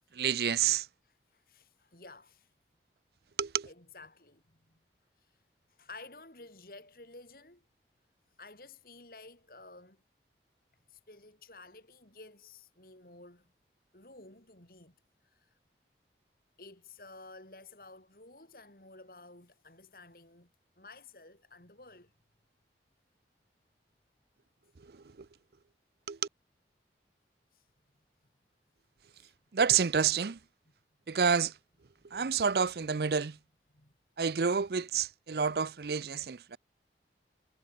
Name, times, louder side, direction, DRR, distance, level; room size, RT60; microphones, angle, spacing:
voice 1, 0.2-0.8 3.4-3.7 26.1-26.2 29.5-30.4 31.1-31.5 32.1-33.3 34.2-36.6, right 6 dB, 60° right, 0.5 m, -28 dB
voice 2, 1.0-2.5 3.6-4.8 5.2-5.4 5.7-7.6 8.4-10.0 10.9-13.5 13.9-14.9 15.2-15.5 16.6-20.5 20.8-22.1 27.5-27.6 29.1-29.3 32.1-32.5 32.8-32.9 33.7-33.9, left 3 dB, 55° left, 4.7 m, -53 dB
head